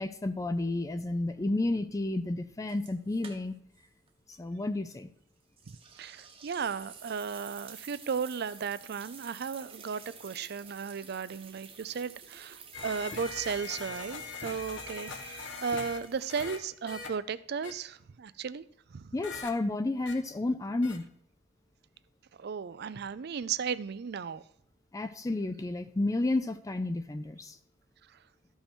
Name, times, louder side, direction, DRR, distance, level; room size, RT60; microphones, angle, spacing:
voice 1, 0.0-3.5 4.3-5.1 19.1-21.0 24.9-27.6, left 2 dB, 20° left, 0.4 m, -31 dB
sound 1, 2.7-3.8 4.1-4.2 5.6-16.9, right 6 dB, 30° right, 1.1 m, -51 dB
voice 2, 6.0-18.6 18.9-19.1 22.4-24.4, right 6 dB, 60° right, 0.4 m, -35 dB
sound 2, 12.7-16.0 16.3-16.6 16.9-17.1 17.6-17.7 19.2-19.5 20.1-20.2 20.8-21.0, left 4 dB, 75° left, 1.4 m, -41 dB
13.0 x 5.6 x 4.4 m
head